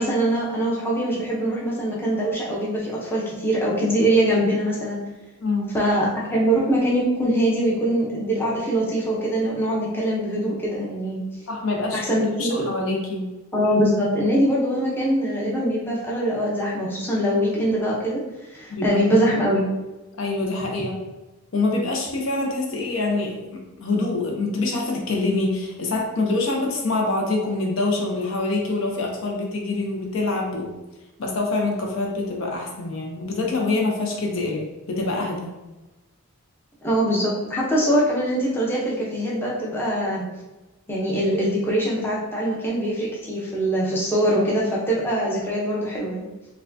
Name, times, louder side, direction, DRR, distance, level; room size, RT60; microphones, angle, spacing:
voice 1, 0.0-5.0 5.7-11.2 11.9-12.7 13.5-18.2 18.5-19.6 36.8-40.3 40.9-46.2, right 1 dB, 10° left, -5 dB, 0.6 m, -23 dB
voice 2, 5.4-5.8 11.5-12.0 12.4-13.2 18.7-18.9 20.2-20.9 21.5-30.7 31.2-35.5, left 2 dB, 60° left, 0 dB, 0.6 m, -25 dB
4.5 x 2.2 x 2.6 m, 1.1 s
head